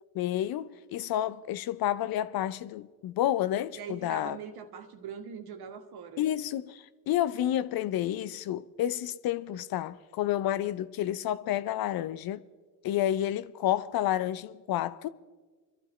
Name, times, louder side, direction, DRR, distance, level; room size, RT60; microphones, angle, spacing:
voice 1, 0.1-4.4 6.2-12.4 12.8-15.1, left 12 dB, 50° left, 0.7 m, -30 dB
voice 2, 3.7-6.3, right 7 dB, 55° right, 1.8 m, -42 dB
26.5 x 12.5 x 3.2 m
hypercardioid pair, 55°, 47 cm